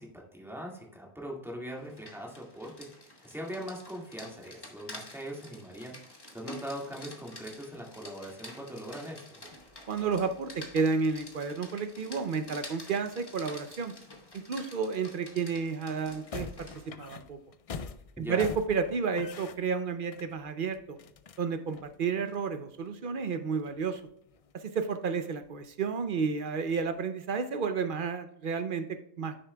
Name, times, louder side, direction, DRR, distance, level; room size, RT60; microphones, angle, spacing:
voice 1, 0.0-5.9 6.3-9.4 18.2-18.5, equal, ahead, -2 dB, 1.8 m, -41 dB
Rain, 1.8-16.9, left 1 dB, 20° left, 1.2 m, -49 dB
sound 1, 9.5-14.9 15.5-15.6 15.9-22.9 23.3-23.4 23.6-25.7 26.1-27.0, left 5 dB, 60° left, 0.3 m, -47 dB
voice 2, 9.9-13.9 14.3-17.4 18.2-21.0 21.4-24.0 24.5-29.3, right 5 dB, 55° right, 9 dB, 0.7 m, -31 dB
9.5 x 6.6 x 2.2 m, 0.75 s
omnidirectional pair, 1.2 m